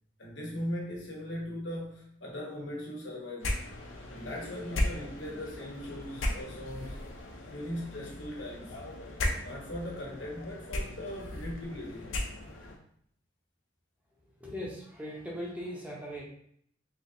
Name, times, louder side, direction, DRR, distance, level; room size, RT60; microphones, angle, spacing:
voice 1, 0.2-3.6 4.1-7.0 7.5-8.8 9.4-12.2, left 1 dB, 65° left, -3 dB, 1.1 m, -39 dB
sound 1, 3.4-12.8, left 1 dB, 90° left, 0.6 m, -36 dB
voice 2, 14.2-16.2, equal, 10° right, -4 dB, 0.8 m, -39 dB
3.3 x 3.2 x 2.7 m, 0.67 s
head